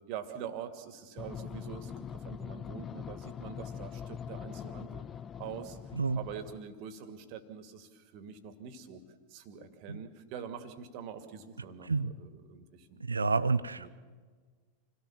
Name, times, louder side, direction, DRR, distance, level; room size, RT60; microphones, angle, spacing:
voice 1, 0.1-5.1 5.4-5.8 6.1-9.0 9.3-13.0 13.8-13.9, right 8 dB, 45° right, 9 dB, 2.4 m, -44 dB
sound 1, 1.2-6.6, left 8 dB, 25° left, 0.6 m, -43 dB
voice 2, 5.9-6.2 9.9-10.0 11.9-12.1 13.0-13.9, right 4 dB, 75° right, 16 dB, 0.7 m, -29 dB
28.0 x 17.5 x 7.4 m, 1.5 s
figure-of-eight pair, 90°, 0 cm